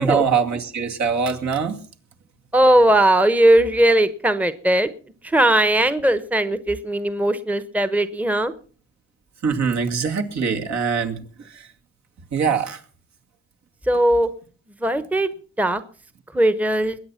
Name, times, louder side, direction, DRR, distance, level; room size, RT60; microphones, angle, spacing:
voice 1, 0.0-1.8 9.4-11.7 12.3-12.8, right 6 dB, 65° right, 3 dB, 2.5 m, -23 dB
voice 2, 2.5-4.9 5.2-8.5 13.9-14.3 14.8-15.3 15.6-15.8 16.3-17.0, right 1 dB, 5° right, 13 dB, 1.0 m, -18 dB
21.5 x 8.7 x 5.8 m, 0.42 s
cardioid pair, 90°, 30 cm